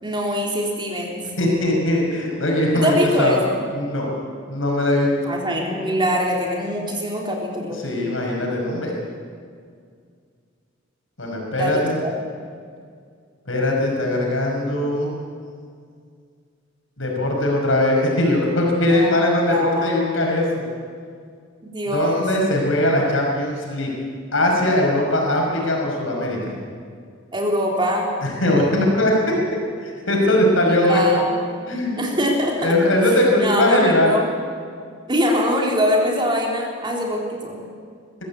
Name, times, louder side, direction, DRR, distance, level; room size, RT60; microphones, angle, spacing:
voice 1, 0.0-1.2 2.7-3.6 5.2-7.8 11.5-12.2 18.8-19.9 21.6-22.3 27.3-28.1 30.7-31.4 32.0-32.7 33.4-34.2 35.1-37.6, equal, 25° right, 0 dB, 3.6 m, -23 dB
voice 2, 1.4-3.4 3.7-4.1 4.5-5.1 7.8-8.9 11.2-12.0 13.5-15.2 17.0-20.5 21.9-23.9 24.3-26.6 28.2-29.1 29.8-31.0 31.7-32.0 32.6-34.1, left 1 dB, 80° left, -1 dB, 5.7 m, -20 dB
21.0 x 15.0 x 8.4 m, 2.1 s
head